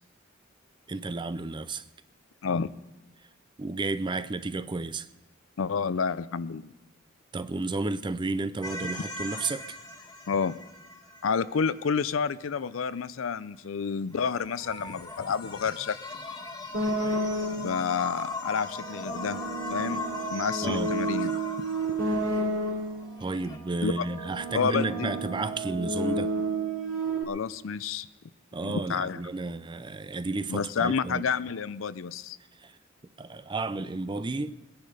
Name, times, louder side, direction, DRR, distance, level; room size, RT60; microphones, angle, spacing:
voice 1, 0.9-1.8 3.6-5.1 7.3-9.8 20.6-20.9 23.2-26.3 28.5-31.3 32.6-32.7 33.2-34.6, right 3 dB, 25° right, 0.5 m, -32 dB
voice 2, 2.4-2.7 5.6-6.7 10.3-10.6 11.2-16.0 17.5-19.4 19.7-20.0 20.3-21.3 23.8-24.1 24.5-25.1 27.3-28.1 28.6-29.2 30.5-32.4, left 5 dB, 80° left, 0.5 m, -29 dB
sound 1, 8.6-11.8 14.1-23.6, left 3 dB, 20° left, 1.7 m, -39 dB
sound 2, 16.7-17.8 18.6-23.1 23.8-27.2, right 2 dB, 70° right, 2.8 m, -31 dB
21.0 x 10.5 x 5.0 m
head